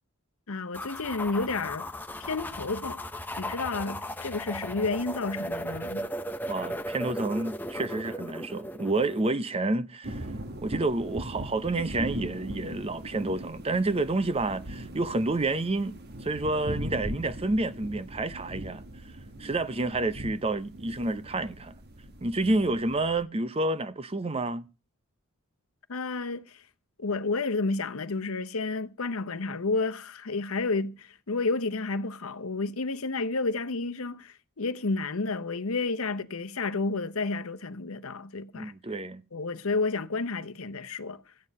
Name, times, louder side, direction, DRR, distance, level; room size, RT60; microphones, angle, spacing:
voice 1, 0.5-1.9 2.2-3.0 3.4-6.1 25.9-26.6 27.0-38.7 39.3-41.2, left 3 dB, 80° left, 0.9 m, -31 dB
sound 1, 0.7-9.3, equal, 10° left, 0.7 m, -36 dB
voice 2, 6.5-10.3 10.6-18.8 19.4-21.7 22.2-24.6 38.5-39.2, right 2 dB, 25° right, 0.6 m, -29 dB
sound 2, 10.0-23.2, right 1 dB, 50° right, 1.2 m, -40 dB
15.0 x 9.4 x 5.4 m
head